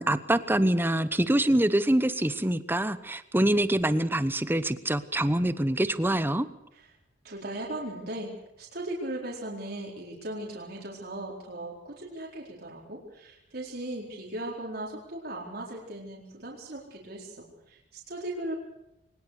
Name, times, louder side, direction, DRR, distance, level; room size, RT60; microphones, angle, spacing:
voice 1, 0.0-6.5, right 1 dB, 10° right, 13 dB, 1.0 m, -25 dB
voice 2, 7.2-18.6, right 1 dB, 60° right, -2 dB, 4.4 m, -38 dB
22.5 x 20.5 x 6.7 m, 0.87 s
head